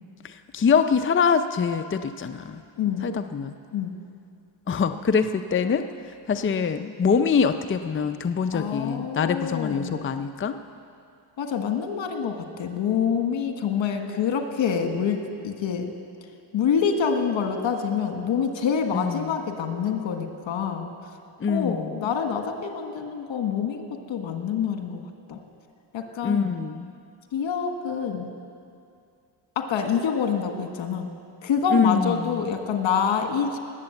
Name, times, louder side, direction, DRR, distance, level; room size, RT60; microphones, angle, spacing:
voice 1, 0.2-2.6 3.0-3.5 4.7-10.6 18.9-19.4 21.4-22.1 26.2-26.9 31.7-32.5, left 6 dB, 25° left, 8 dB, 0.6 m, -24 dB
voice 2, 2.8-3.1 3.7-3.9 8.5-10.0 11.4-15.9 16.5-20.9 21.5-25.0 25.3-25.4 25.9-26.6 27.3-28.3 29.5-31.1 31.4-33.6, left 7 dB, 75° left, 5 dB, 1.6 m, -26 dB
19.5 x 8.1 x 7.8 m, 2.4 s
cardioid pair, 90°, 46 cm